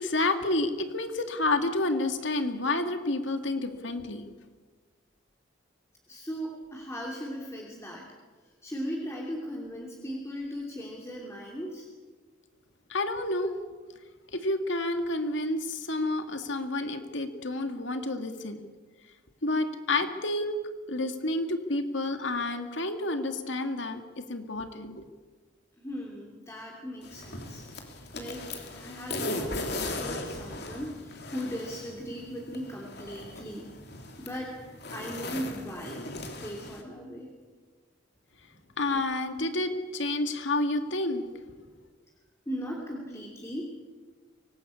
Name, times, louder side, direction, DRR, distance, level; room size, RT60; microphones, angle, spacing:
voice 1, 0.0-4.3 12.9-13.5 14.3-18.6 19.4-20.6 20.9-24.0 24.3-25.0 38.8-41.2, left 2 dB, 70° left, 7 dB, 2.1 m, -29 dB
voice 2, 6.1-8.1 8.6-11.9 25.8-27.6 27.9-33.7 34.2-34.5 34.9-36.0 36.4-37.3 42.5-43.7, equal, 15° left, -2 dB, 2.9 m, -38 dB
sound 1, 27.0-36.8, left 2 dB, 55° left, 3.3 m, -38 dB
24.0 x 19.0 x 8.5 m, 1.4 s
head